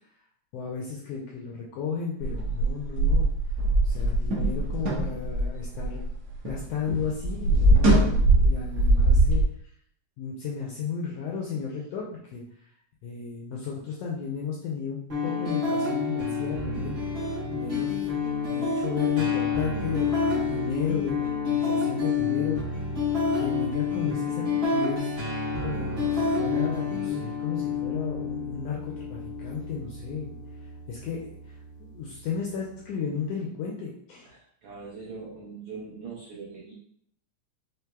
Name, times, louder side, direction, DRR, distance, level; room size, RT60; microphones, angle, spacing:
voice 1, 0.5-3.3 3.8-6.0 6.4-9.7 10.2-12.7 13.0-18.1 18.5-22.9 23.3-25.1 25.6-30.4 30.9-34.3, left 6 dB, 80° left, -2 dB, 1.4 m, -34 dB
sound 1, 2.2-6.6 6.9-9.4, right 1 dB, 65° right, 2.1 m, -22 dB
sound 2, 15.1-33.1, left 5 dB, 40° right, 1.6 m, -29 dB
voice 2, 34.2-36.7, right 4 dB, 80° right, -5 dB, 1.3 m, -41 dB
5.8 x 3.2 x 2.3 m, 0.67 s
omnidirectional pair, 3.4 m